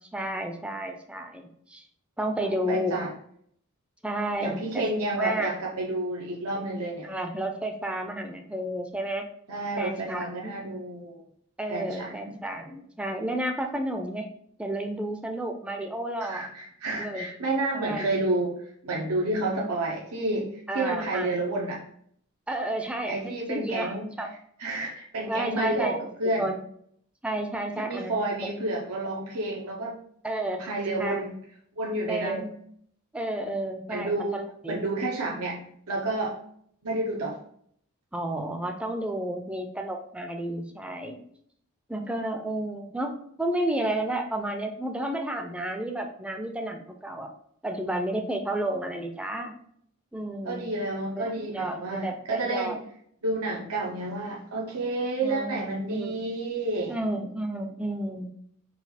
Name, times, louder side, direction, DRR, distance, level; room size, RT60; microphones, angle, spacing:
voice 1, 0.0-1.8 2.2-3.0 4.0-4.8 5.2-5.5 7.0-9.3 9.8-10.5 11.6-14.3 14.6-16.5 17.0-17.3 17.7-18.1 20.7-21.4 22.5-24.3 25.3-26.6 27.2-28.2 30.2-30.7 31.0-31.3 32.1-32.5 33.1-34.8 38.1-41.2 41.9-47.3 47.6-49.6 50.1-50.7 51.1-52.8 55.2-55.6 55.9-56.2 56.9-58.3, right 1 dB, 5° right, 3 dB, 0.4 m, -31 dB
voice 2, 2.4-3.1 4.4-7.1 9.5-11.2 11.7-12.1 16.2-21.8 23.1-24.1 24.6-26.5 27.8-30.0 30.6-31.3 31.8-32.5 33.9-34.4 34.7-36.4 36.8-37.4 50.4-52.8 53.2-56.9, right 2 dB, 85° right, -2 dB, 0.7 m, -30 dB
4.0 x 2.3 x 4.1 m, 0.65 s
head